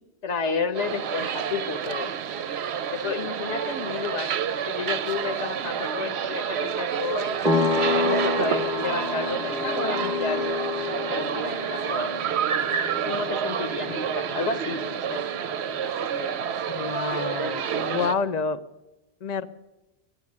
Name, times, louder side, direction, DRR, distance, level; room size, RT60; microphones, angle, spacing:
voice 1, 0.2-2.1 2.8-4.3 4.7-7.4 7.9-10.4 11.1-12.1 13.0-15.2 15.8-16.3 17.9-18.2, left 5 dB, 75° left, 8 dB, 1.4 m, -31 dB
sound 1, 0.7-18.1, right 8 dB, 70° right, 0.9 m, -29 dB
sound 2, 7.4-15.8, left 3 dB, 5° right, 0.9 m, -29 dB
voice 2, 16.7-18.6 19.2-19.5, left 5 dB, 45° left, 14 dB, 0.6 m, -28 dB
11.5 x 10.5 x 9.6 m, 1.0 s
omnidirectional pair, 1.2 m